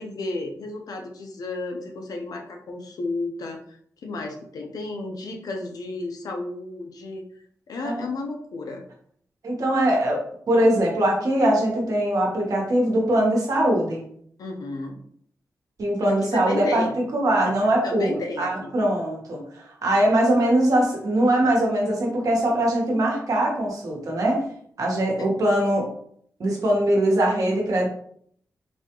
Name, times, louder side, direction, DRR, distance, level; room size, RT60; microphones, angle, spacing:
voice 1, 0.0-7.2 7.7-8.8 14.4-15.0 16.1-16.9 17.4-17.5 17.8-18.7 25.2-25.3, left 2 dB, 80° left, 3 dB, 0.6 m, -32 dB
voice 2, 9.4-14.1 15.8-16.8 17.1-18.1 18.4-24.4 24.8-25.9 26.4-27.9, right 1 dB, 70° right, -1 dB, 1.2 m, -22 dB
4.1 x 2.4 x 2.9 m, 0.64 s
wide cardioid pair, 100°, 6 cm